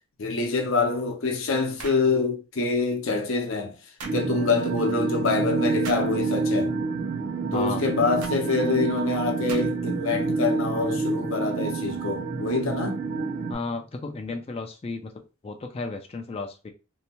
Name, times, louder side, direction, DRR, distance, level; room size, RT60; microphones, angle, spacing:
voice 1, 0.2-3.7 4.1-6.7 7.5-13.0, left 4 dB, 60° left, 0.7 m, -26 dB
sound 1, 1.8-2.1 4.0-4.2 5.8-6.1 8.2-8.4 9.5-9.9, right 4 dB, 85° right, 0.6 m, -39 dB
sound 2, 4.0-13.5, right 4 dB, 40° right, 0.5 m, -28 dB
voice 2, 7.5-7.8 13.5-15.1 15.4-16.7, left 3 dB, 25° left, 0.3 m, -33 dB
2.7 x 2.1 x 2.8 m
head